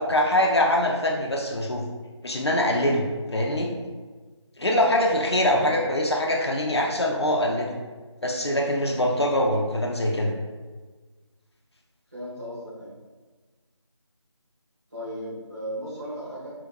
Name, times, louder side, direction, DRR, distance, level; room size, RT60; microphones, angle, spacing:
voice 1, 0.0-1.8 2.2-3.0 3.3-3.7 4.6-7.7 8.2-10.3, left 1 dB, 60° left, -1 dB, 0.5 m, -23 dB
voice 2, 12.1-12.9 14.9-16.5, equal, 35° right, -11 dB, 1.4 m, -36 dB
4.7 x 2.2 x 2.2 m, 1.4 s
figure-of-eight pair, 170°, 16 cm